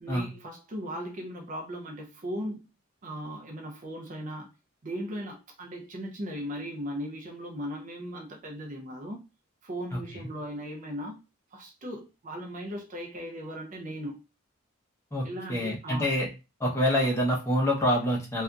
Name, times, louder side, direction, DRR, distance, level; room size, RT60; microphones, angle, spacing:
voice 1, 0.0-2.6 3.0-4.5 4.8-9.2 9.6-11.2 11.5-14.2 15.2-16.2, equal, 35° right, 0.4 m, -37 dB
voice 2, 15.1-16.3 16.6-18.4, equal, 15° left, 0.6 m, -26 dB
2.7 x 2.4 x 2.2 m
head